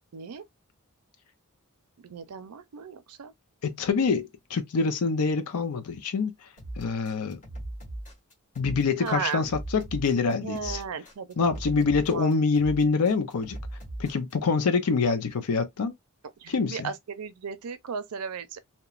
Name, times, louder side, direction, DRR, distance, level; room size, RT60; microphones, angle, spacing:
voice 1, 0.1-0.4 2.0-3.3 9.0-9.5 10.4-11.4 12.1-12.3 16.4-18.6, right 6 dB, 80° right, 0.5 m, -35 dB
voice 2, 3.6-6.3 6.8-7.4 8.6-10.8 11.4-13.6 14.0-15.9 16.5-16.9, left 4 dB, 85° left, 0.5 m, -25 dB
sound 1, 6.6-14.3, right 1 dB, 35° left, 1.6 m, -39 dB
2.9 x 2.1 x 2.3 m
head